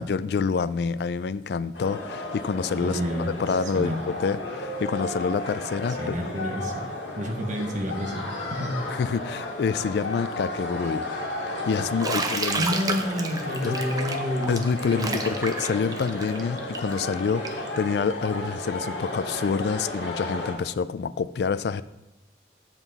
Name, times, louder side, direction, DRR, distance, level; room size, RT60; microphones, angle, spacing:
voice 1, 0.0-3.0 3.4-6.2 8.9-11.1 11.4-12.7 13.6-13.8 14.5-21.8, left 5 dB, 65° left, 16 dB, 0.3 m, -27 dB
sound 1, 1.7-20.5, left 2 dB, 85° left, 1.6 m, -33 dB
voice 2, 2.8-3.3 3.7-4.0 6.0-6.9 7.2-8.2 8.5-8.8 12.6-14.6 14.9-15.2, equal, 45° right, 3 dB, 1.1 m, -29 dB
Bathtub (filling or washing), 12.0-17.7, right 3 dB, 20° right, 0.6 m, -31 dB
7.9 x 7.2 x 4.0 m, 0.95 s
head